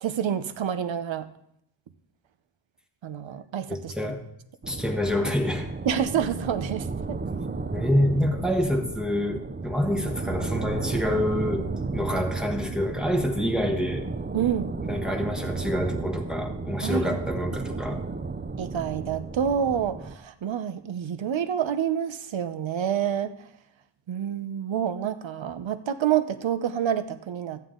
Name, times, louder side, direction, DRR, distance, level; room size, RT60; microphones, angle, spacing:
voice 1, 0.0-1.3 3.0-3.9 5.9-7.2 14.3-14.7 16.8-17.0 18.6-23.3 24.1-27.6, right 9 dB, 70° right, 11 dB, 0.8 m, -28 dB
voice 2, 3.7-4.2 4.7-5.7 7.7-14.1 14.9-18.1, left 1 dB, ahead, 3 dB, 1.3 m, -27 dB
sound 1, 4.6-20.2, right 3 dB, 20° right, 0.5 m, -33 dB
13.5 x 9.2 x 3.8 m, 0.72 s
wide cardioid pair, 130°, 47 cm